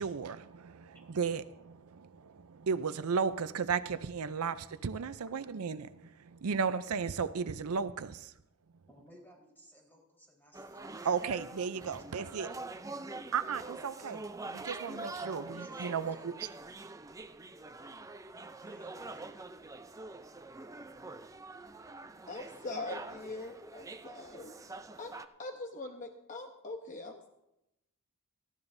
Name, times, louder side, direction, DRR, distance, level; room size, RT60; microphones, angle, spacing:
voice 1, 0.0-8.3 11.0-12.5 13.3-16.3, right 6 dB, 70° right, 0.5 m, -35 dB
voice 2, 8.9-11.3 11.7-13.1 15.2-16.2 18.6-19.4, right 1 dB, 10° left, 4.1 m, -58 dB
sound 1, 10.5-25.3, right 3 dB, 15° right, 0.5 m, -45 dB
voice 3, 22.3-24.5 25.0-25.1 25.4-27.3, left 2 dB, 35° left, 0.9 m, -42 dB
18.0 x 14.5 x 2.7 m
head